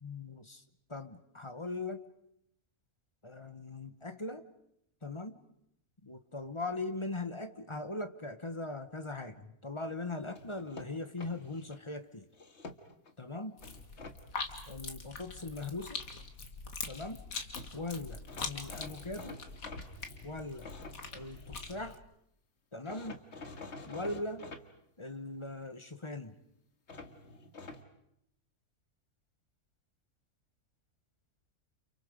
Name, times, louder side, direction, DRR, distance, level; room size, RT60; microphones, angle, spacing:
voice 1, 0.0-0.6 0.9-2.0 3.2-4.5 5.0-5.4 6.0-12.3 13.2-13.6 14.7-16.0 16.9-17.2 17.7-19.4 20.2-20.7 21.1-22.0 22.7-23.2 23.9-24.5 25.0-26.4, left 2 dB, 25° left, 9 dB, 1.0 m, -40 dB
sound 1, 10.4-11.8 12.3-13.1 13.6-14.2 17.3-17.4 17.5-17.7 18.3-21.8 22.9-24.6 26.9-27.8, left 3 dB, 50° left, 1.9 m, -48 dB
sound 2, 13.6-22.0, left 4 dB, 70° left, 2.3 m, -43 dB
30.0 x 28.0 x 5.1 m, 0.75 s
omnidirectional pair, 1.5 m